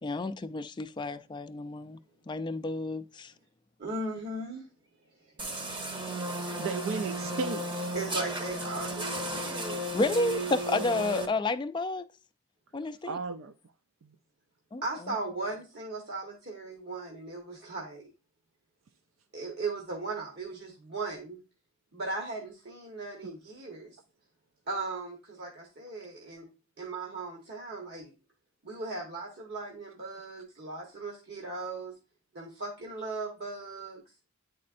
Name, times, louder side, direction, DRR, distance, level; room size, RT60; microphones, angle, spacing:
voice 1, 0.0-2.0 2.3-3.3 9.9-12.0 12.7-13.2 14.7-14.8, left 2 dB, 20° left, 0.3 m, -30 dB
voice 2, 3.8-4.6 6.5-6.7 7.9-10.1 14.8-18.1 19.3-21.4 21.9-24.0 24.7-26.5 26.8-28.1 28.6-32.0 32.3-34.0, right 3 dB, 55° right, 1.2 m, -37 dB
sound 1, 5.4-11.3, right 1 dB, 25° right, 0.8 m, -34 dB
voice 3, 6.6-7.9 13.0-13.5 14.0-14.1, right 4 dB, 80° right, 0.4 m, -34 dB
9.5 x 4.3 x 2.5 m
head